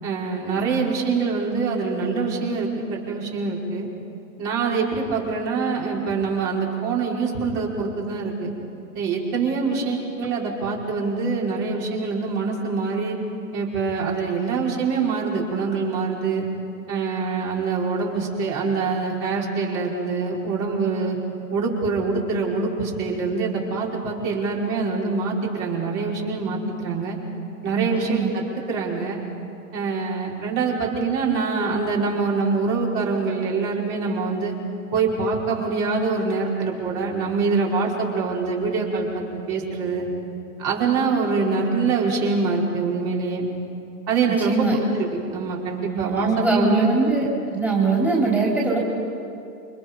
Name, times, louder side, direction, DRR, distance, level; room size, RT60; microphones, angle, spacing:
voice 1, 0.0-3.9 4.4-8.5 8.9-13.2 13.5-16.5 16.9-21.2 21.5-27.2 27.6-28.4 28.7-29.2 29.7-34.5 34.9-40.1 40.6-43.5 44.1-46.9, right 4 dB, 40° right, -3 dB, 5.4 m, -24 dB
voice 2, 27.7-28.3 44.2-44.8 45.9-47.3 47.5-48.8, right 3 dB, 5° right, -5 dB, 3.6 m, -22 dB
29.0 x 25.0 x 5.5 m, 2.8 s
hypercardioid pair, 120°, 47 cm